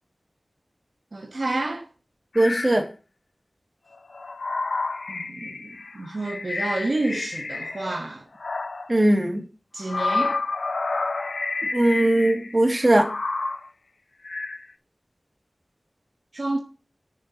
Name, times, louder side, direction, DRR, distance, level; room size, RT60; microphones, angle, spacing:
voice 1, 1.1-1.9 5.1-8.3 9.7-10.4 16.3-16.6, right 2 dB, 65° right, 1.2 m, -29 dB
sound 1, 2.3-2.8 3.9-8.1 8.4-9.0 9.8-12.6 12.9-13.7 14.2-14.7, left 3 dB, 85° left, 0.6 m, -30 dB
voice 2, 2.3-2.8 8.9-9.4 11.7-13.1, right 1 dB, 30° right, 2.4 m, -19 dB
6.4 x 5.7 x 6.7 m
wide cardioid pair, 40°, 0 cm